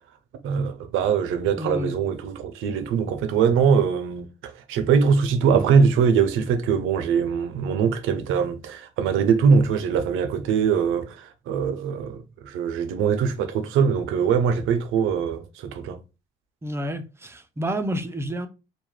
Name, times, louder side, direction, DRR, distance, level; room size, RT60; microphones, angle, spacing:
voice 1, 0.4-16.0, right 6 dB, 85° right, 0.5 m, -22 dB
voice 2, 1.6-2.0 16.6-18.5, equal, 15° right, 0.4 m, -29 dB
2.2 x 2.1 x 3.1 m
cardioid pair, 90°, 20 cm